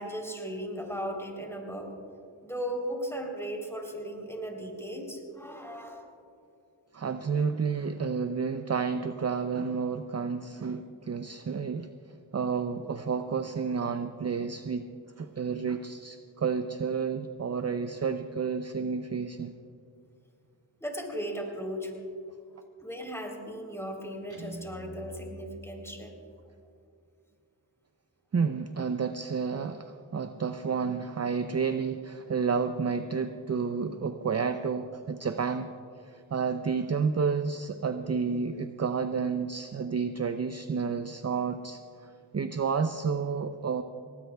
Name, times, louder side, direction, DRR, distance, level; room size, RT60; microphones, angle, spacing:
voice 1, 0.0-1.9 2.4-6.1 20.8-21.9 22.5-26.1, equal, 5° left, 0 dB, 3.5 m, -37 dB
voice 2, 6.9-11.9 12.3-14.9 15.2-19.5 28.3-35.7 36.0-43.8, right 5 dB, 35° right, 9 dB, 0.5 m, -30 dB
Guitar, 24.3-26.3, right 1 dB, 55° right, 3.3 m, -45 dB
19.5 x 18.0 x 2.3 m, 2.4 s
cardioid pair, 45°, 46 cm